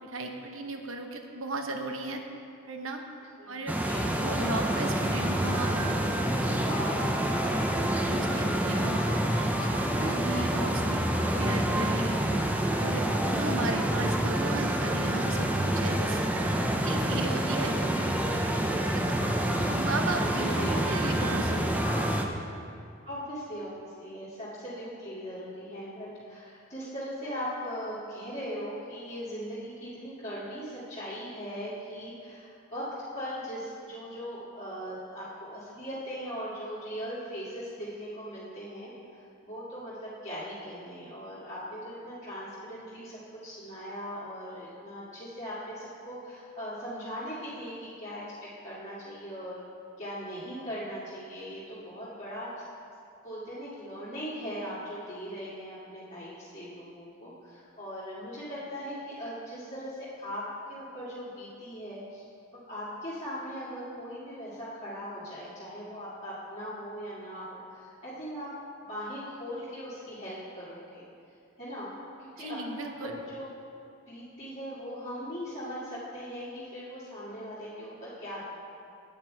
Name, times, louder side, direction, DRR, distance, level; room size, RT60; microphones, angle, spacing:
voice 1, 0.0-2.3 2.7-3.0 3.5-3.7 4.1-6.6 8.1-9.1 9.5-11.0 11.3-16.2 16.8-18.1 18.5-18.6 18.9-19.2 19.6-22.1 72.4-73.2, right 2 dB, 70° right, 4 dB, 0.8 m, -36 dB
sound 1, 3.7-22.3, right 1 dB, 5° right, 0.5 m, -27 dB
voice 2, 3.8-4.3 6.6-7.1 8.3-8.9 20.2-21.0 21.4-21.9 23.0-32.9 33.1-48.2 48.6-49.6 50.0-52.6 53.2-60.4 60.7-62.3 62.5-68.5 68.9-71.0 71.6-71.9 72.2-73.5 74.1-78.4, equal, 30° left, -12 dB, 2.1 m, -39 dB
9.2 x 8.8 x 4.5 m, 2.5 s
head